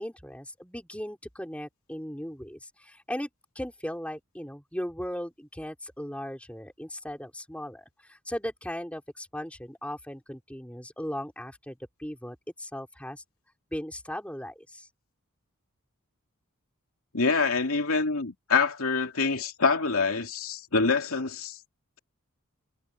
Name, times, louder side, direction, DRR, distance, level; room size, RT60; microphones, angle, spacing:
voice 1, 0.0-3.3 3.6-13.2 13.7-14.9, equal, 5° left, 5.3 m, -37 dB
voice 2, 17.1-21.6, left 4 dB, 80° left, 2.6 m, -26 dB
head